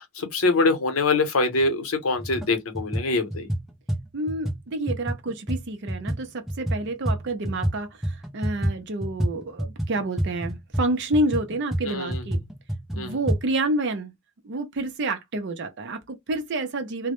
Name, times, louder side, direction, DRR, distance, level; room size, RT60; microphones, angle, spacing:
voice 1, 0.0-3.5 11.8-12.2 13.0-13.2, left 3 dB, 90° left, 0.7 m, -24 dB
sound 1, 1.6-1.7 2.2-2.5 2.7-7.8 8.0-13.4, right 1 dB, ahead, 0.5 m, -28 dB
voice 2, 4.1-12.4 12.9-14.1 14.4-17.1, right 2 dB, 55° right, 0.5 m, -29 dB
2.1 x 2.0 x 2.9 m
head